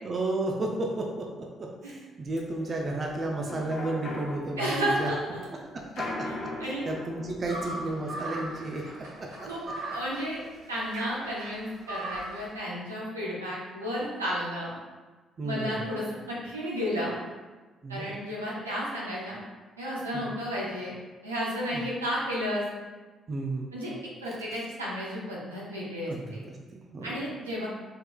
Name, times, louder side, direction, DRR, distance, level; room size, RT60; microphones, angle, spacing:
voice 1, 0.0-5.1 5.5-9.5 12.7-12.8 15.4-15.8 17.8-18.1 20.1-20.4 21.7-21.9 23.3-23.7 26.1-27.3, right 2 dB, 40° right, 0 dB, 0.6 m, -33 dB
sound 1, 2.3-10.9 11.3-11.4 11.6-12.2, left 2 dB, 50° left, 0.8 m, -41 dB
voice 2, 4.6-5.2 5.9-6.8 9.5-9.6 9.9-10.4 10.7-14.7 15.4-17.2 17.9-19.4 19.8-20.9 21.2-22.6 23.7-23.9 24.2-26.4 27.0-27.7, equal, 85° right, -6 dB, 0.9 m, -32 dB
sound 2, 7.5-12.5, right 1 dB, 65° right, 1.2 m, -38 dB
4.7 x 4.5 x 2.3 m, 1.3 s
figure-of-eight pair, 45°, 0 cm